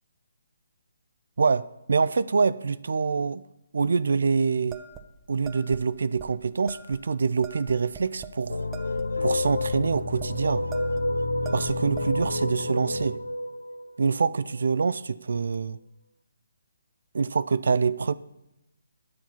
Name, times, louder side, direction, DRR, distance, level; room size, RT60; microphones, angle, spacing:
voice 1, 1.4-3.4 3.7-4.8 5.3-8.7 9.2-10.6 11.5-13.2 14.0-15.8 17.1-18.1, right 5 dB, 65° right, 16 dB, 0.4 m, -25 dB
sound 1, 4.7-5.8 6.2-6.3 6.7-7.0 7.4-8.4 8.7-10.3 10.7-11.1 11.4-12.3, right 6 dB, 15° right, 0.8 m, -43 dB
sound 2, 8.5-14.6, left 2 dB, 85° left, 0.7 m, -29 dB
9.4 x 8.7 x 5.6 m, 0.89 s
figure-of-eight pair, 140°, 0 cm